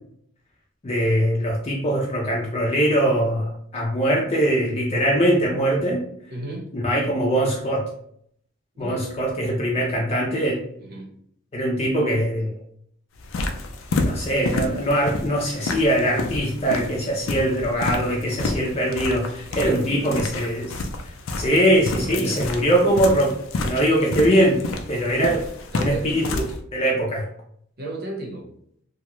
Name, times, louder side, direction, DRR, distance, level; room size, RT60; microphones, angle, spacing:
voice 1, 0.8-6.0 6.7-7.9 8.8-10.6 11.5-12.6 14.1-20.8 21.4-24.6 24.9-25.4 25.8-26.4 26.7-27.3, right 1 dB, 30° left, -2 dB, 0.5 m, -22 dB
voice 2, 6.3-6.7 8.7-9.1 10.8-11.1 19.5-20.3 22.0-22.4 25.7-26.5 27.8-28.5, right 2 dB, 55° right, 0 dB, 0.8 m, -34 dB
sound 1, 13.2-26.6, left 2 dB, 90° left, 0.4 m, -30 dB
2.7 x 2.2 x 3.0 m, 0.66 s
head